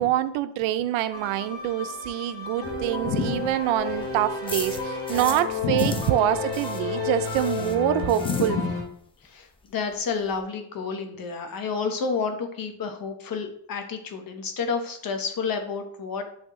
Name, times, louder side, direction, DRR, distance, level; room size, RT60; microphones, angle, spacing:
voice 1, 0.0-8.6, right 13 dB, 80° right, 12 dB, 0.6 m, -25 dB
sound 1, 1.1-8.8, left 4 dB, 65° left, 2.3 m, -32 dB
sound 2, 2.6-5.5 5.8-9.0 9.2-9.3 9.7-9.8 9.9-10.4, left 3 dB, 10° left, 0.5 m, -40 dB
voice 2, 3.0-3.5 5.6-6.1 8.2-8.6 9.2-16.2, left 5 dB, 45° left, 6 dB, 1.1 m, -29 dB
9.2 x 3.4 x 3.1 m, 0.66 s
cardioid pair, 115°, 47 cm